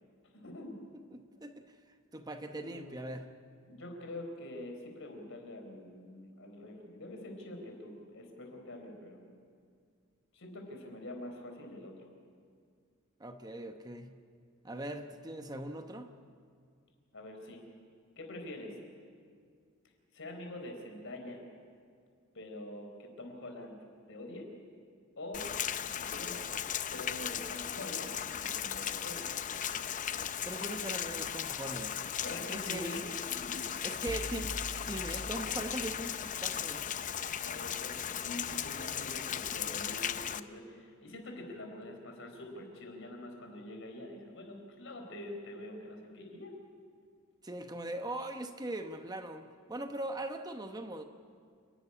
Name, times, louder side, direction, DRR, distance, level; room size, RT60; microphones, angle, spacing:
voice 1, 0.3-0.8 2.5-3.1 3.7-9.2 10.3-12.0 17.1-17.7 18.2-18.8 20.1-21.4 22.3-23.8 24.1-24.5 25.2-25.5 25.9-26.5 26.9-29.3 32.2-33.7 37.4-46.5, left 1 dB, 65° left, 3 dB, 4.2 m, -45 dB
voice 2, 1.1-1.6 2.1-3.3 13.2-14.1 14.6-16.1 30.4-32.0 32.5-33.2 33.8-34.6 34.9-36.8 47.4-51.0, right 1 dB, 20° right, 6 dB, 0.9 m, -40 dB
Rain, 25.3-40.4, left 9 dB, 40° left, 0.6 m, -37 dB
sound 1, 34.1-36.3, right 1 dB, 55° right, 1.0 m, -44 dB
28.5 x 12.0 x 9.9 m, 2.2 s
head